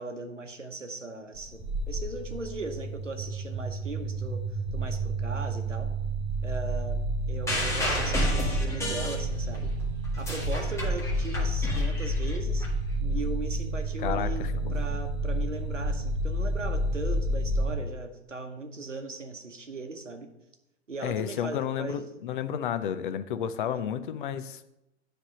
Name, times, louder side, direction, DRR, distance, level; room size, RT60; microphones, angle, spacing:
voice 1, 0.0-4.4 4.7-5.9 6.4-7.0 7.3-9.7 10.2-12.7 13.0-20.3 20.9-22.1 23.6-23.8, right 3 dB, 90° right, 6 dB, 0.9 m, -38 dB
sound 1, 1.4-17.7, right 1 dB, 25° right, 1.6 m, -30 dB
sound 2, 7.5-9.7 10.0-12.7 13.5-13.6, equal, 10° left, 1.6 m, -31 dB
voice 2, 14.0-14.3 14.6-14.8 21.0-24.6, left 9 dB, 45° left, 12 dB, 0.5 m, -31 dB
9.7 x 3.4 x 5.5 m, 0.89 s
figure-of-eight pair, 100°, 36 cm